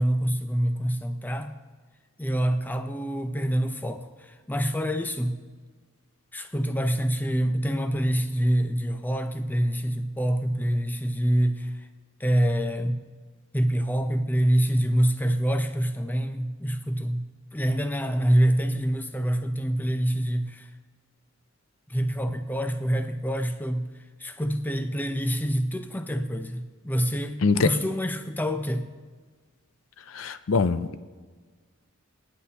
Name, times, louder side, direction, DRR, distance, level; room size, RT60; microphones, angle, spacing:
voice 1, 0.0-1.5 2.2-5.5 6.3-11.9 12.2-13.0 13.5-17.2 17.5-20.7 21.9-23.9 24.2-28.9, equal, 10° left, 0.6 m, -26 dB
voice 2, 30.1-31.0, left 4 dB, 70° left, 0.5 m, -23 dB
26.5 x 9.7 x 2.9 m
head